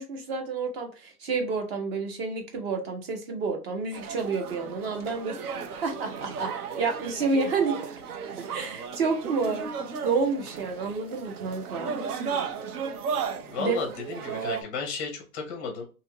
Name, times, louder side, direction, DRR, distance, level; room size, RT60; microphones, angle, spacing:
voice 1, 0.0-5.3 5.8-7.8 8.4-9.7 10.0-12.0 13.6-13.8, right 4 dB, 40° right, 4 dB, 0.8 m, -29 dB
sound 1, 3.9-14.6, right 6 dB, 75° right, 0.7 m, -35 dB
voice 2, 13.5-15.8, left 5 dB, 15° left, 2 dB, 0.5 m, -33 dB
2.7 x 2.4 x 2.8 m, 0.33 s
hypercardioid pair, 150°, 45 cm